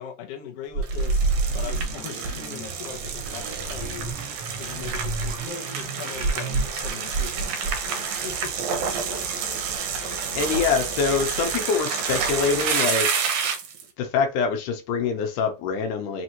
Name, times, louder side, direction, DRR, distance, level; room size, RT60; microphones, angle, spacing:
voice 1, 0.0-4.1 4.6-9.7 10.0-10.7, left 8 dB, 65° left, 1.7 m, -40 dB
sound 1, 0.7-2.0 2.9-4.2 4.8-5.5 6.2-7.8, right 3 dB, 45° right, 1.5 m, -27 dB
sound 2, 0.8-13.8, right 6 dB, 75° right, 2.2 m, -29 dB
sound 3, 1.5-6.9, right 3 dB, 25° right, 1.2 m, -38 dB
voice 2, 10.4-13.2 14.0-16.2, left 5 dB, 85° left, 2.4 m, -25 dB
5.3 x 2.6 x 2.9 m
omnidirectional pair, 3.6 m